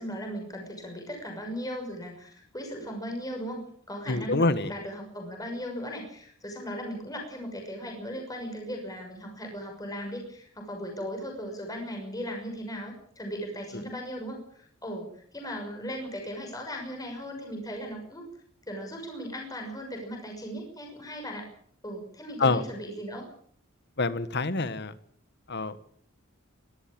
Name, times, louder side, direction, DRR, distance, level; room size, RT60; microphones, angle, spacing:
voice 1, 0.0-3.6 3.9-18.2 18.7-21.5 21.8-23.3, equal, 15° left, 2 dB, 6.2 m, -37 dB
voice 2, 4.1-4.7 13.7-13.8 22.4-22.6 24.0-24.9 25.5-25.9, left 3 dB, 55° left, 14 dB, 1.5 m, -26 dB
23.5 x 14.0 x 8.9 m, 0.62 s
head